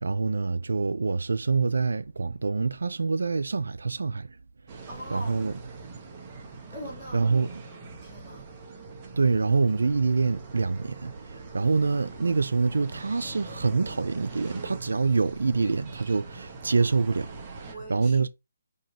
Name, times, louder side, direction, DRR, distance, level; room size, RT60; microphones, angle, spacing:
voice 1, 0.0-4.4 4.7-5.6 7.1-7.5 9.2-18.3, right 4 dB, 75° right, 0.3 m, -26 dB
sound 1, 4.7-17.8, right 4 dB, 20° right, 0.8 m, -43 dB
voice 2, 4.8-5.4 6.7-7.3 8.0-8.6 17.7-18.3, equal, 5° left, 1.7 m, -42 dB
4.5 x 2.9 x 2.8 m
hypercardioid pair, 160°, 0 cm